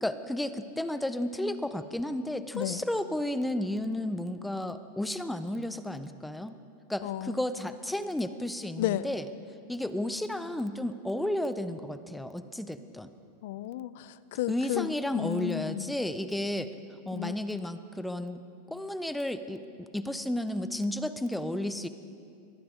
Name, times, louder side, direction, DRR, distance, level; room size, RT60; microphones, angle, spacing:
voice 1, 0.0-6.6 6.9-9.3 9.7-13.1 14.5-16.7 17.1-18.4 18.7-21.9, left 1 dB, 5° left, 11 dB, 0.5 m, -32 dB
voice 2, 7.0-7.4 8.8-9.1 13.4-15.9 17.1-17.3, left 13 dB, 55° left, 16 dB, 0.5 m, -33 dB
22.5 x 15.0 x 3.7 m, 2.4 s
supercardioid pair, 170°, 0 cm